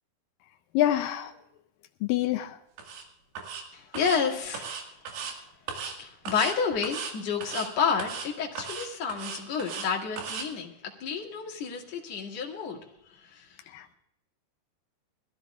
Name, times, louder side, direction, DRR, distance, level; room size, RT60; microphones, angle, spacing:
voice 1, 0.7-1.3 2.0-2.6 13.7-13.9, left 13 dB, 85° left, 6 dB, 2.0 m, -26 dB
sound 1, 2.8-3.0 3.4-3.6 3.9-4.2 4.5-5.3 5.7-6.0 6.3-6.6 6.8-7.1 7.4-7.7 8.0-8.3 8.6-9.9 10.2-10.5, right 6 dB, 70° right, 3.8 m, -36 dB
voice 2, 3.7-4.8 6.0-12.8 13.1-13.5, left 6 dB, 45° left, -2 dB, 2.8 m, -30 dB
23.5 x 14.5 x 2.4 m, 0.87 s
omnidirectional pair, 4.8 m